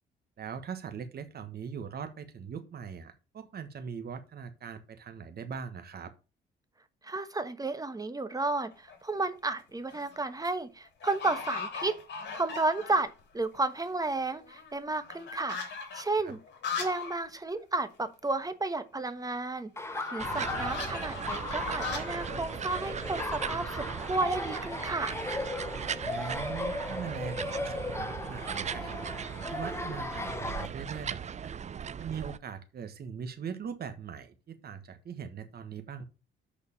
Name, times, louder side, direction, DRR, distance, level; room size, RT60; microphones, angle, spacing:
voice 1, 0.4-6.1 16.2-16.3 20.2-20.7 26.0-29.1 29.5-31.5 32.0-36.0, right 6 dB, 50° right, 1.4 m, -41 dB
voice 2, 7.0-12.0 12.3-16.4 16.8-25.2, right 3 dB, 20° right, 1.2 m, -32 dB
sound 1, 8.7-9.2 9.7-10.2 10.4-10.5 11.0-13.2 13.5-13.6 13.8-17.2 17.5-17.6 17.9-18.0 19.9-23.7, left 5 dB, 60° left, 2.8 m, -40 dB
Laughter, 19.8-30.7, left 2 dB, 15° left, 1.1 m, -37 dB
sound 2, 20.2-32.4, right 7 dB, 35° right, 0.5 m, -38 dB
6.7 x 5.0 x 7.0 m
cardioid pair, 90°, 20 cm